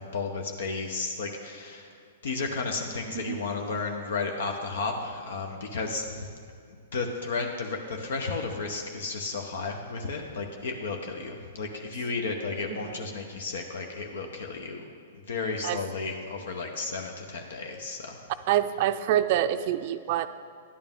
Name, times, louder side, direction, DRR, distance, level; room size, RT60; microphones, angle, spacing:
voice 1, 0.0-1.9 2.2-6.3 6.9-14.8 15.3-18.2, left 4 dB, 75° left, 3 dB, 0.9 m, -33 dB
voice 2, 18.5-20.3, right 12 dB, 50° right, 11 dB, 0.4 m, -26 dB
11.0 x 8.7 x 3.6 m, 2.3 s
hypercardioid pair, 125°, 0 cm